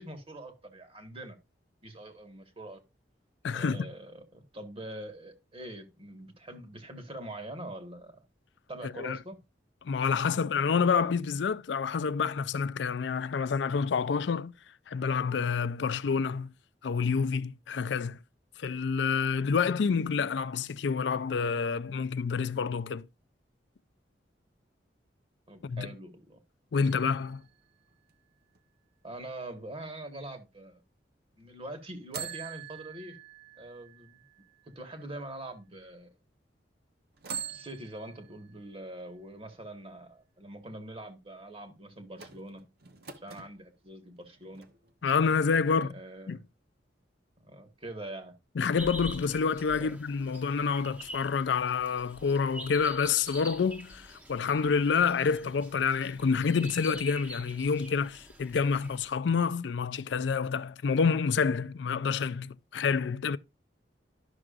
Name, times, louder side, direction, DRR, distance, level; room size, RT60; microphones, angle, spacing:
voice 1, 0.0-1.4 1.8-2.8 3.5-8.2 8.7-9.4 25.5-26.4 29.0-30.8 31.4-33.2 33.6-34.2 34.7-36.1 37.5-42.7 43.2-44.7 45.7-46.4 47.4-48.4 49.7-50.0, right 1 dB, 30° right, 1.6 m, -44 dB
voice 2, 3.4-3.9 8.8-9.2 9.8-14.5 14.9-16.5 16.8-18.2 18.6-23.0 25.6-25.9 26.7-27.4 45.0-45.9 46.3-46.4 48.6-63.4, left 5 dB, 70° left, 0.4 m, -28 dB
sound 1, 26.8-28.6 32.1-35.2 35.8-35.9 37.2-39.0 42.1-43.5 44.2-45.1 45.4-45.5, right 7 dB, 60° right, 1.0 m, -45 dB
sound 2, 48.8-59.1, equal, 10° right, 1.0 m, -46 dB
12.0 x 6.1 x 2.5 m
head